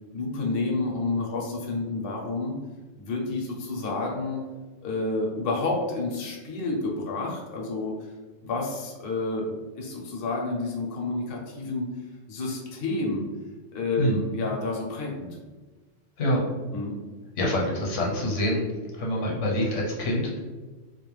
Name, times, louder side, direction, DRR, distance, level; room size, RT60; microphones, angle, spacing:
voice 1, 0.1-2.6 3.0-4.4 4.8-7.9 8.4-11.9 12.3-13.2 13.7-15.3 16.7-16.9, left 3 dB, 55° left, -1 dB, 0.7 m, -29 dB
voice 2, 17.4-18.6 18.9-20.4, equal, 75° left, -3 dB, 1.0 m, -26 dB
2.3 x 2.1 x 3.0 m, 1.3 s
omnidirectional pair, 1.3 m